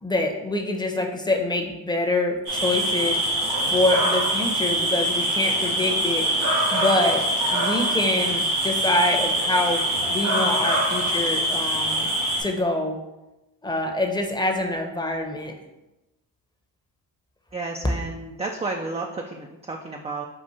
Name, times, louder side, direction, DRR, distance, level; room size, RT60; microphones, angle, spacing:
voice 1, 0.0-3.2 3.7-6.3 6.7-7.2 7.5-9.8 10.1-12.1 12.4-13.0 13.6-15.5, left 2 dB, 10° left, 3 dB, 0.8 m, -25 dB
sound 1, 2.5-12.4, right 1 dB, 90° right, 1.6 m, -23 dB
voice 2, 17.5-20.3, right 3 dB, 15° right, 1 dB, 0.4 m, -32 dB
5.0 x 2.5 x 4.1 m, 1.0 s
supercardioid pair, 55°, 45 cm